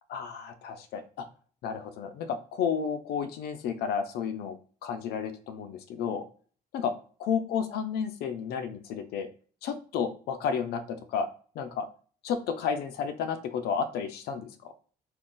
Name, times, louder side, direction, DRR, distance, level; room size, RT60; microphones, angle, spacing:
voice 1, 0.1-1.2 1.6-4.6 4.8-6.3 6.7-6.9 7.2-9.3 9.6-11.3 11.6-11.9 12.2-14.7, left 7 dB, 70° left, 8 dB, 0.5 m, -32 dB
2.5 x 2.4 x 3.7 m, 0.42 s
cardioid pair, 110°, 17 cm